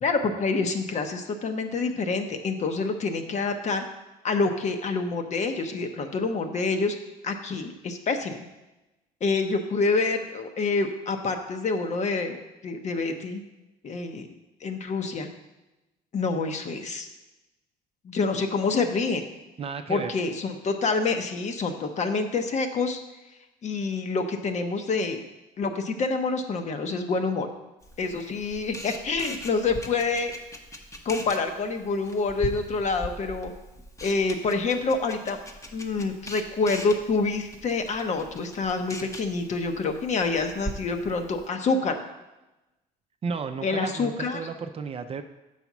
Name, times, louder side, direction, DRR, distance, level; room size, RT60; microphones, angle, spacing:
voice 1, 0.0-3.8 4.2-7.0 7.2-8.4 9.2-13.4 13.8-14.3 14.6-15.3 16.1-17.1 18.0-19.3 19.9-23.0 23.6-25.3 25.6-27.5 28.0-30.3 31.0-33.5 34.0-35.4 35.7-42.0 43.6-44.4, left 4 dB, 45° left, 6 dB, 0.9 m, -27 dB
voice 2, 19.6-20.1 43.2-45.2, right 5 dB, 35° right, 7 dB, 0.5 m, -33 dB
Camera, 27.8-41.5, equal, 20° left, 0.8 m, -41 dB
7.0 x 4.2 x 6.0 m, 1.0 s
cardioid pair, 110°, 17 cm